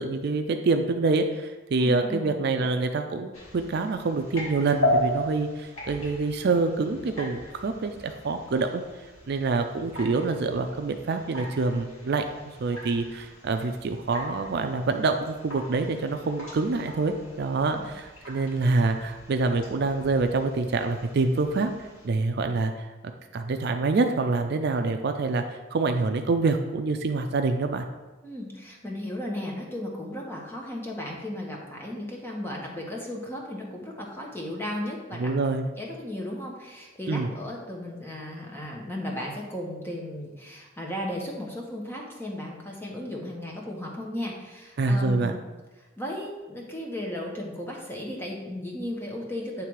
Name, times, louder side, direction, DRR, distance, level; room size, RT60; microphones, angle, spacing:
voice 1, 0.0-8.8 9.3-12.3 12.6-22.9 23.3-27.8 35.2-35.7 37.1-37.3 44.8-45.3, right 3 dB, 50° right, 6 dB, 0.4 m, -26 dB
voice 2, 1.8-2.3 17.7-17.9 28.2-35.3 35.8-45.4 46.0-49.6, left 1 dB, 10° left, -1 dB, 1.1 m, -35 dB
sound 1, 3.3-22.1, left 1 dB, 85° left, 2.1 m, -36 dB
8.7 x 3.3 x 4.7 m, 1.2 s
head